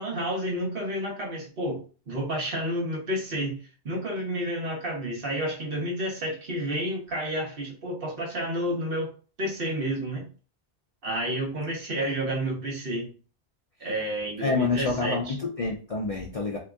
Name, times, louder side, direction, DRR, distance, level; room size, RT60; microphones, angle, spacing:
voice 1, 0.0-3.6 3.8-9.1 9.4-10.2 11.0-13.1 13.8-15.2, right 1 dB, 60° right, -2 dB, 1.2 m, -30 dB
voice 2, 14.4-16.6, left 4 dB, 50° left, -1 dB, 0.4 m, -27 dB
3.5 x 2.9 x 2.3 m, 0.37 s
omnidirectional pair, 1.1 m